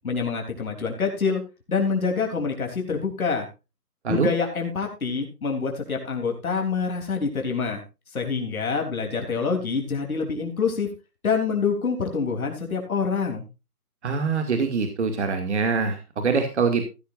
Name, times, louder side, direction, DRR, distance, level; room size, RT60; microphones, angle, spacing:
voice 1, 0.0-1.4 1.7-3.5 4.1-7.8 8.1-10.9 11.2-13.5, left 5 dB, 65° left, 3 dB, 3.6 m, -26 dB
voice 2, 14.0-16.8, right 5 dB, 45° right, 6 dB, 2.4 m, -24 dB
15.5 x 13.0 x 2.6 m, 0.28 s
figure-of-eight pair, 160°, 47 cm